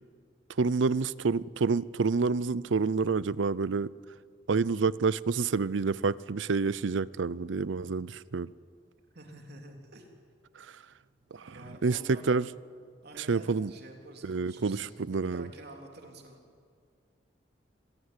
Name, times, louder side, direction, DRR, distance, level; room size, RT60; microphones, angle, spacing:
voice 1, 0.6-3.9 4.5-8.5 11.3-11.5 11.8-12.4 13.2-13.7 14.2-15.5, right 4 dB, 80° right, 0.6 m, -28 dB
voice 2, 9.1-10.1 11.3-12.3 13.0-16.4, right 1 dB, 60° right, 3.6 m, -49 dB
25.5 x 17.0 x 9.8 m
head